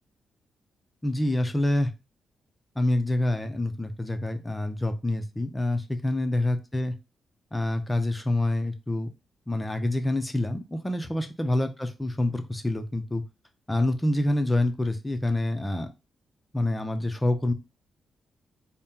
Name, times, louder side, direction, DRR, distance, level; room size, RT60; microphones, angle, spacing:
voice 1, 1.0-1.9 2.8-6.9 7.5-9.1 9.5-13.2 13.7-15.9 16.5-17.5, left 1 dB, 15° left, 7 dB, 0.6 m, -27 dB
4.2 x 2.1 x 3.7 m, 0.28 s
cardioid pair, 90°, 0 cm